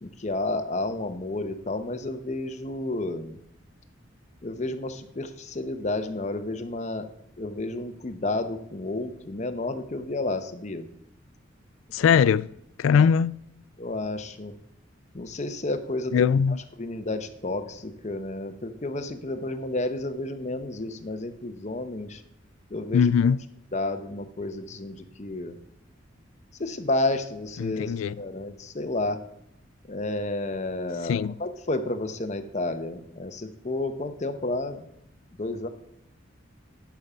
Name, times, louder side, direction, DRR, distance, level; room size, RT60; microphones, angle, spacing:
voice 1, 0.0-3.4 4.4-7.1 7.4-10.9 12.9-13.1 13.8-14.5 15.1-16.3 16.8-22.2 22.7-23.3 23.7-25.6 26.6-29.2 29.9-34.9 35.4-35.7, left 2 dB, 35° left, 0.8 m, -31 dB
voice 2, 11.9-12.5 12.8-13.4 16.1-16.6 22.9-23.4 27.6-28.2 31.0-31.3, left 7 dB, 85° left, 0.3 m, -21 dB
10.5 x 5.6 x 5.0 m
head